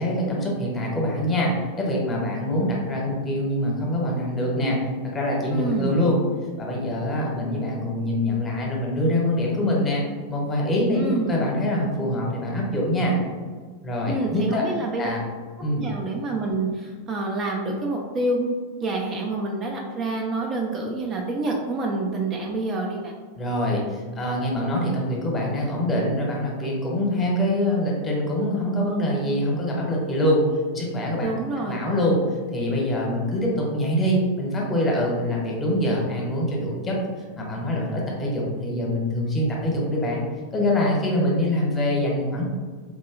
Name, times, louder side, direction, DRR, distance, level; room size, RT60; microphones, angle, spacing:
voice 1, 0.0-4.8 5.1-6.2 6.6-11.0 11.3-13.2 13.8-14.6 15.0-15.2 15.6-15.8 23.4-30.4 30.7-31.3 31.6-37.0 37.4-40.2 40.5-42.4, left 1 dB, 20° left, -2 dB, 0.9 m, -24 dB
voice 2, 5.5-5.9 10.9-11.3 14.1-15.1 15.8-18.5 18.8-23.1 31.2-31.8, right 2 dB, 25° right, -1 dB, 0.4 m, -27 dB
3.7 x 2.7 x 2.4 m, 1.5 s
figure-of-eight pair, 90°, 0 cm